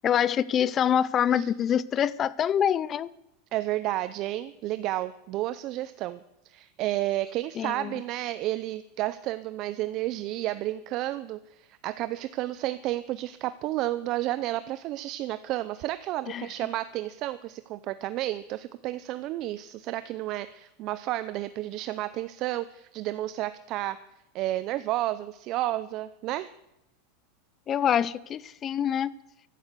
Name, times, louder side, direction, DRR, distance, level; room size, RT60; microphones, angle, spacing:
voice 1, 0.0-3.1 7.6-7.9 16.3-16.5 27.7-29.1, left 9 dB, 25° left, 20 dB, 0.4 m, -25 dB
voice 2, 3.5-6.2 6.5-24.0 24.3-26.5, right 15 dB, 40° right, 14 dB, 0.5 m, -31 dB
16.0 x 11.5 x 6.7 m, 0.87 s
supercardioid pair, 145°, 0 cm